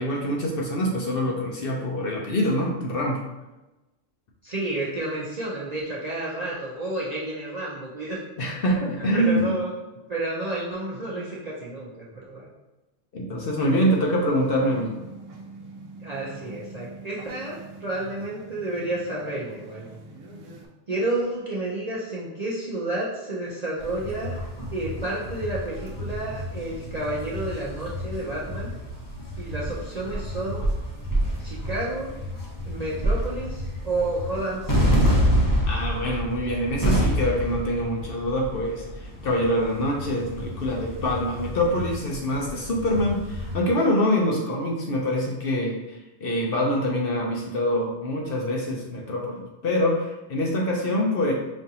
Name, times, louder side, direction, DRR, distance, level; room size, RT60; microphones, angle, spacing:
voice 1, 0.0-3.2 8.4-9.5 13.1-14.9 35.7-45.8 46.2-51.3, equal, 55° left, -1 dB, 0.8 m, -25 dB
voice 2, 4.4-8.2 9.0-9.7 10.1-12.5 16.0-19.9 20.9-24.4 24.7-28.7 29.4-30.6 31.4-32.1 32.6-35.0, right 2 dB, 45° right, -6 dB, 0.6 m, -30 dB
sound 1, 13.5-20.7, right 2 dB, 80° right, 1.0 m, -44 dB
sound 2, 23.8-43.6, equal, 20° left, 0.6 m, -28 dB
5.3 x 2.5 x 2.8 m, 1.0 s
omnidirectional pair, 1.3 m